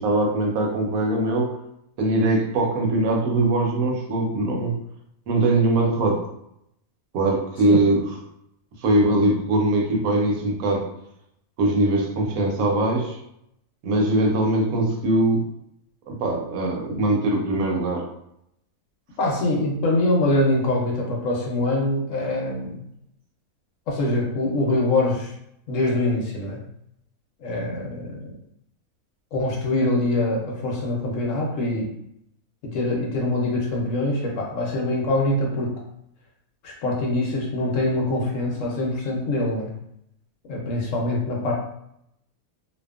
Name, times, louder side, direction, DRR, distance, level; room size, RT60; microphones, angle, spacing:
voice 1, 0.0-1.6 2.0-4.7 5.3-6.3 7.1-8.0 8.8-10.9 11.6-13.2 13.8-15.4 16.1-18.0, right 2 dB, 75° right, 0 dB, 1.1 m, -21 dB
voice 2, 19.2-22.8 23.9-25.3 25.7-26.6 27.4-28.3 29.3-31.9 32.6-35.7 36.6-39.7 40.5-41.5, left 2 dB, 70° left, -1 dB, 1.0 m, -24 dB
2.7 x 2.2 x 2.3 m, 0.77 s
omnidirectional pair, 1.5 m